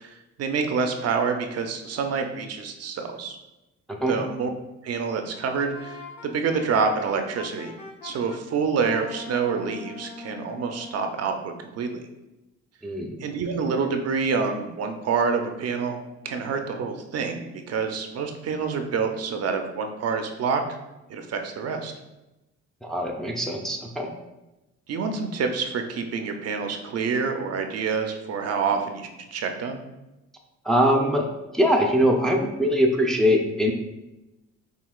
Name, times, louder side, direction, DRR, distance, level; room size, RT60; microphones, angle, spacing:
voice 1, 0.0-3.4 4.1-4.5 4.8-7.7 8.0-12.0 13.2-20.6 21.1-21.9 24.9-29.8, right 5 dB, 55° right, 5 dB, 0.5 m, -27 dB
Wind instrument woodwind instrument, 5.7-8.4 8.8-11.2, left 4 dB, 75° left, 0.9 m, -41 dB
voice 2, 12.8-13.1 22.8-24.1 30.6-31.3 31.5-33.7, equal, ahead, 2 dB, 0.5 m, -22 dB
5.7 x 2.7 x 2.3 m, 0.99 s
cardioid pair, 90°, 30 cm